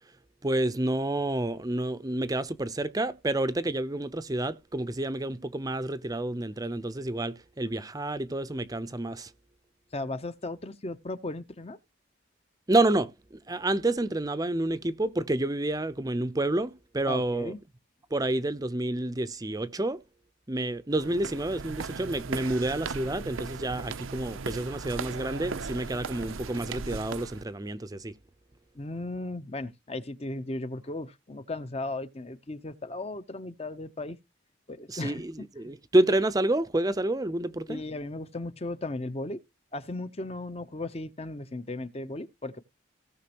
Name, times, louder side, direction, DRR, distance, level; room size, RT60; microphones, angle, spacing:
voice 1, 0.4-9.3 12.7-13.1 13.5-17.5 18.1-20.0 20.5-28.1 34.9-37.8, right 1 dB, 20° right, 0.6 m, -29 dB
voice 2, 9.9-11.8 17.1-17.6 28.7-34.2 34.7-35.2 37.7-39.4 39.7-42.6, left 2 dB, 30° left, 0.7 m, -36 dB
sound 1, 20.9-27.4, right 4 dB, 85° right, 0.7 m, -37 dB
17.5 x 6.0 x 2.9 m
head